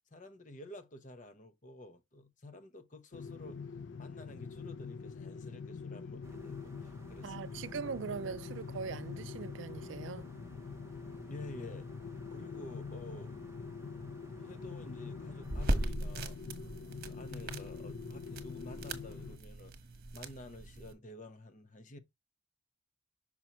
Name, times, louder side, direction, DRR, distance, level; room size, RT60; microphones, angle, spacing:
voice 1, 0.1-7.7 11.3-11.9 12.3-13.4 14.4-16.4 17.0-19.8 20.1-22.0, left 1 dB, 40° left, 0.9 m, -50 dB
sound 1, 3.1-19.4, left 5 dB, 65° left, 0.4 m, -45 dB
sound 2, 6.2-15.9, right 1 dB, 15° right, 0.7 m, -55 dB
voice 2, 7.2-10.3, right 5 dB, 70° right, 0.4 m, -41 dB
sound 3, 15.4-20.9, right 1 dB, 50° right, 1.2 m, -38 dB
6.1 x 5.7 x 3.0 m
head